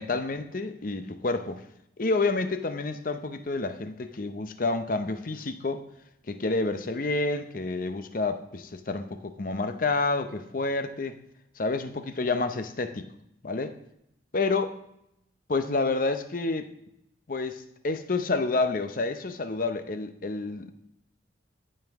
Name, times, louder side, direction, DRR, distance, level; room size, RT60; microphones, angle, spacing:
voice 1, 0.0-1.6 2.0-5.9 6.3-11.2 11.6-13.1 13.4-13.7 14.3-14.7 15.5-16.7 17.3-20.7, left 3 dB, 45° left, 9 dB, 0.6 m, -29 dB
15.0 x 5.4 x 3.5 m, 0.79 s
head